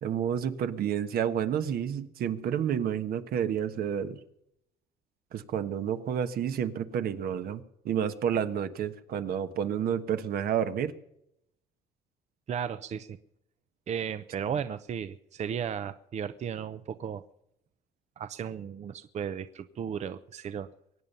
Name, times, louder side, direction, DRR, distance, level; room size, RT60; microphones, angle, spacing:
voice 1, 0.0-4.2 5.3-10.9, right 8 dB, 65° right, 9 dB, 1.3 m, -30 dB
voice 2, 12.5-13.2 13.9-17.2 18.2-20.7, right 8 dB, 45° right, 12 dB, 0.7 m, -35 dB
24.0 x 9.1 x 5.5 m, 0.78 s
cardioid pair, 110°, 17 cm